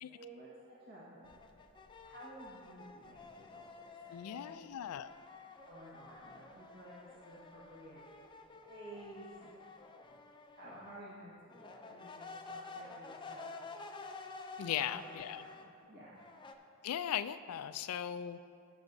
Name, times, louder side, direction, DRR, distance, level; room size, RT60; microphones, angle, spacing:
voice 1, 0.1-1.4 2.0-4.7 5.6-8.0 8.6-9.6 10.5-13.5 14.6-16.2, right 1 dB, 50° right, -9 dB, 1.7 m, -53 dB
sound 1, 1.2-4.7 5.0-11.0 11.5-15.7 16.2-16.5, left 3 dB, 20° left, 0.4 m, -51 dB
voice 2, 4.1-5.1 14.6-15.4 16.8-18.4, left 10 dB, 85° left, 13 dB, 0.3 m, -38 dB
16.5 x 7.1 x 2.7 m, 2.6 s
head